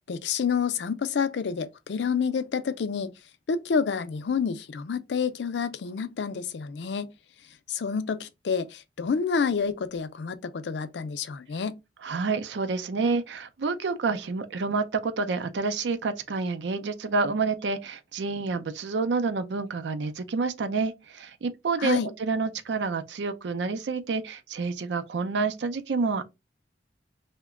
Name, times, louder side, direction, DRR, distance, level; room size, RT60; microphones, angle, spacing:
voice 1, 0.1-3.1 3.5-7.1 7.7-11.8 21.8-22.1, left 6 dB, 70° left, 0.4 m, -28 dB
voice 2, 12.0-26.2, right 4 dB, 75° right, 0.5 m, -28 dB
2.9 x 2.1 x 3.6 m
head